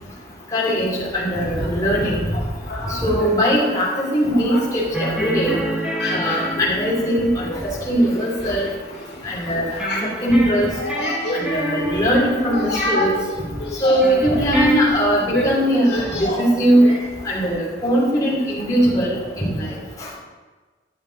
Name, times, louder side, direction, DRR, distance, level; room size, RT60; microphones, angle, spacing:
voice 1, 0.5-2.4 2.8-5.6 6.1-7.5 7.9-8.7 9.2-9.8 10.2-10.7 11.3-13.1 13.8-16.9 17.2-19.7, equal, 20° left, -6 dB, 2.9 m, -20 dB
voice 2, 2.7-3.3 4.3-4.6 5.0-5.1 6.0-6.4 7.1-7.2 7.5-7.6 8.2-8.3 9.1-9.5 9.8-10.1 10.8-11.4 11.9-12.1 12.5-13.2 13.6-14.0 15.3-15.5 15.9-16.4 16.8-16.9, left 2 dB, 75° left, -4 dB, 2.4 m, -27 dB
sound 1, 4.9-9.1 9.8-14.9, right 1 dB, 5° right, 1.3 m, -28 dB
11.5 x 7.4 x 4.0 m, 1.3 s
head